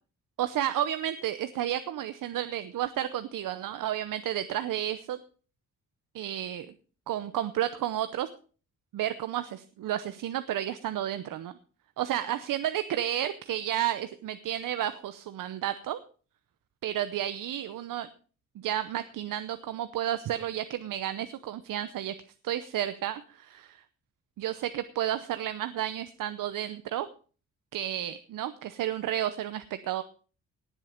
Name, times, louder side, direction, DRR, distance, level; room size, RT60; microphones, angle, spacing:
voice 1, 0.4-5.2 6.1-6.7 7.1-8.3 8.9-11.5 12.0-16.0 16.8-18.1 18.6-22.1 22.4-23.8 24.4-27.1 27.7-30.0, right 11 dB, 85° right, 11 dB, 0.8 m, -32 dB
18.5 x 7.5 x 5.1 m, 0.38 s
wide cardioid pair, 150°, 32 cm